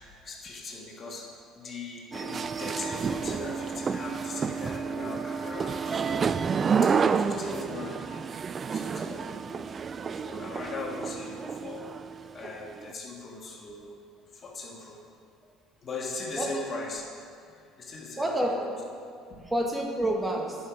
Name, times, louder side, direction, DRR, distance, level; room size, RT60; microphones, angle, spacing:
voice 1, 0.0-6.5 6.8-8.2 8.7-9.7 10.0-11.9 12.3-14.0 14.3-15.0 15.8-17.0 17.5-18.8 19.3-19.5, left 3 dB, 40° left, -1 dB, 1.6 m, -40 dB
sound 1, 2.1-12.9, right 6 dB, 35° right, 0.3 m, -30 dB
voice 2, 7.2-7.7 16.4-16.5 18.2-18.5 19.5-20.6, right 1 dB, 15° right, 0 dB, 1.4 m, -29 dB
10.5 x 5.5 x 4.9 m, 2.3 s
supercardioid pair, 80°, 0 cm